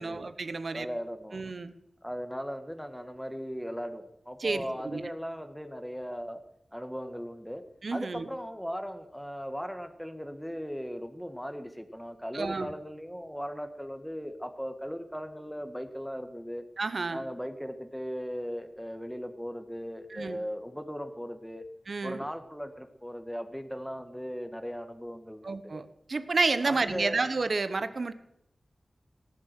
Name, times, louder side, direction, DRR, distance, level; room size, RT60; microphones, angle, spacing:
voice 1, 0.0-0.9 1.3-1.7 4.4-5.0 7.8-8.3 12.3-12.7 16.8-17.2 20.1-20.4 21.9-22.2 25.4-28.1, right 3 dB, 70° right, 11 dB, 1.0 m, -30 dB
voice 2, 0.7-1.5 2.0-6.4 6.7-7.6 7.9-16.6 17.1-21.6 22.0-25.8 26.6-27.3, equal, ahead, 8 dB, 1.8 m, -38 dB
18.5 x 7.6 x 9.2 m, 0.78 s
wide cardioid pair, 70°, 0 cm